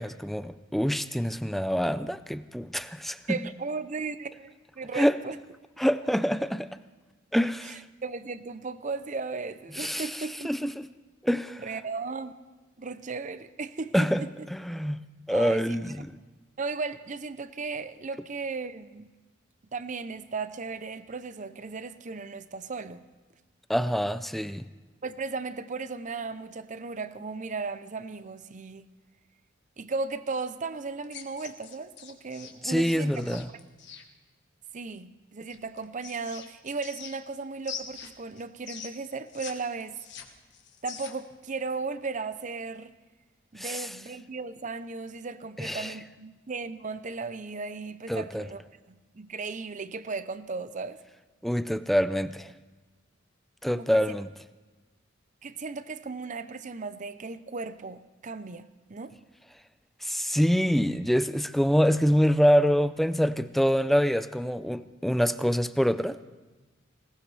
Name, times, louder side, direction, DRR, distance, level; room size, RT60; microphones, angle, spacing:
voice 1, 0.0-3.2 5.0-5.2 5.8-6.7 7.3-7.8 9.8-10.1 10.4-10.7 11.2-11.6 13.9-14.2 14.5-16.1 23.7-24.6 32.6-33.5 43.6-43.9 45.6-45.9 48.1-48.5 51.4-52.5 53.6-54.3 60.0-66.2, equal, ahead, 0.4 m, -25 dB
voice 2, 3.3-5.4 7.6-10.7 11.6-12.3 12.8-14.3 15.3-16.0 16.6-19.1 19.7-23.0 25.0-28.9 29.8-33.4 34.7-40.0 40.8-42.9 43.5-48.6 48.9-51.0 53.7-54.1 55.4-59.1, right 4 dB, 40° right, 0.6 m, -36 dB
sound 1, 31.0-34.0 35.5-37.4 37.6-39.5 39.8-41.3, left 8 dB, 60° left, 1.4 m, -43 dB
20.5 x 18.5 x 3.3 m
head